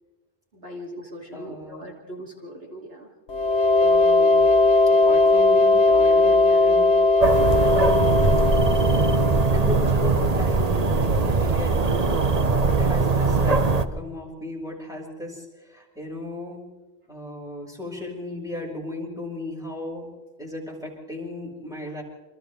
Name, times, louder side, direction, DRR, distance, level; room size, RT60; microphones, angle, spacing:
voice 1, 0.5-3.1, equal, 60° right, -2 dB, 3.4 m, -40 dB
voice 2, 1.3-1.9 3.8-4.4 4.9-7.4 7.6-8.1 8.7-9.1 9.5-12.0 12.5-16.6 17.1-20.1 20.4-22.0, left 1 dB, 5° right, -2 dB, 6.0 m, -36 dB
sound 1, 3.3-9.9, left 2 dB, 80° left, 1.4 m, -19 dB
sound 2, 7.2-13.8, right 3 dB, 40° right, 1.0 m, -21 dB
28.5 x 26.0 x 3.6 m, 1.2 s
omnidirectional pair, 1.1 m